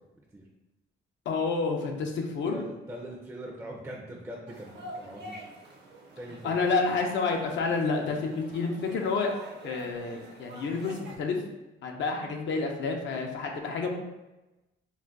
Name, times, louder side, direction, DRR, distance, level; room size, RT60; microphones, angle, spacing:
voice 1, 1.3-2.6 6.4-9.3 9.6-11.3 11.8-14.0, left 4 dB, 70° left, 1 dB, 0.5 m, -29 dB
voice 2, 2.4-5.4 6.2-6.6, right 1 dB, 15° right, -2 dB, 0.4 m, -42 dB
sound 1, 4.5-11.2, right 1 dB, 60° right, 0.7 m, -47 dB
2.4 x 2.2 x 3.4 m, 1.0 s
cardioid pair, 90°, 20 cm